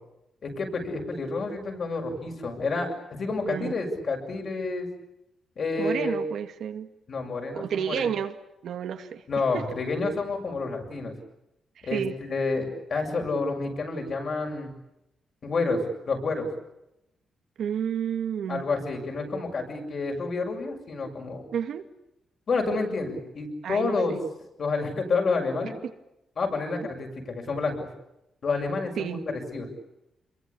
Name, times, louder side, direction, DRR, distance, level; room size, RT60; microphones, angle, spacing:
voice 1, 0.4-4.9 5.6-6.2 7.1-8.1 9.3-11.1 11.8-14.7 15.4-16.5 18.5-21.5 22.5-24.1 24.6-25.7 26.4-27.9 28.4-29.2 29.5-29.7, left 3 dB, 45° left, 2 dB, 7.3 m, -29 dB
voice 2, 3.4-3.8 5.8-6.9 7.5-8.4 8.6-9.2 9.5-9.6 11.8-12.2 17.6-18.6 21.5-21.8 23.6-24.2 29.0-29.3, right 8 dB, 75° right, 7 dB, 2.2 m, -30 dB
28.5 x 23.0 x 8.7 m, 0.87 s
wide cardioid pair, 145°, 0 cm